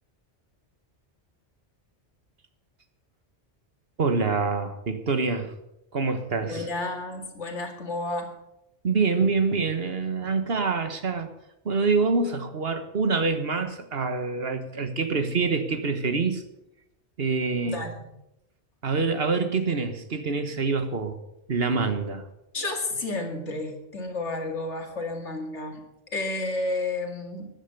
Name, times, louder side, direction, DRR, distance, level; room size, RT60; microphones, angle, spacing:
voice 1, 4.0-5.5 5.9-6.7 8.8-11.3 11.6-16.4 17.2-17.8 18.8-21.2 21.5-22.2, right 4 dB, 60° right, 8 dB, 1.6 m, -26 dB
voice 2, 6.4-8.3 17.7-18.0 22.5-25.8 26.1-27.5, left 2 dB, 85° left, 4 dB, 2.5 m, -31 dB
14.0 x 10.5 x 6.8 m, 0.85 s
omnidirectional pair, 1.2 m